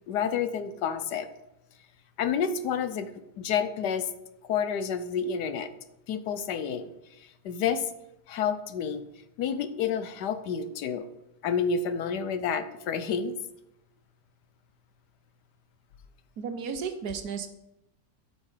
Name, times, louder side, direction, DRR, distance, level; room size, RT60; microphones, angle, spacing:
voice 1, 0.1-1.3 2.2-3.1 3.4-4.1 4.4-5.7 6.1-7.9 8.3-9.0 9.4-11.1 11.4-13.3, left 7 dB, 75° left, 11 dB, 1.3 m, -29 dB
voice 2, 16.4-17.5, right 6 dB, 65° right, 9 dB, 1.4 m, -33 dB
12.0 x 6.2 x 4.9 m, 0.88 s
omnidirectional pair, 1.8 m